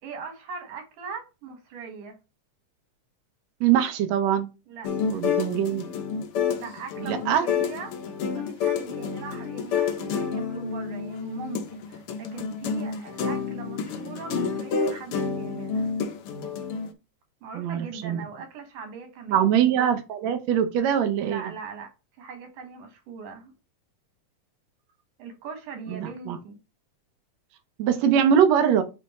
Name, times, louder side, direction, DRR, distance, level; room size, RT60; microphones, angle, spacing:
voice 1, 0.0-2.2 4.7-4.9 6.5-15.9 17.4-19.6 21.2-21.9 22.2-23.5 25.2-26.6, right 5 dB, 85° right, 2.9 m, -40 dB
voice 2, 3.6-4.5 5.1-5.9 7.1-7.4 17.6-18.2 19.3-21.4 25.9-26.4 27.8-28.8, right 9 dB, 70° right, 2.0 m, -22 dB
sound 1, 4.8-16.9, left 6 dB, 75° left, 1.2 m, -29 dB
6.8 x 3.4 x 4.2 m
omnidirectional pair, 3.5 m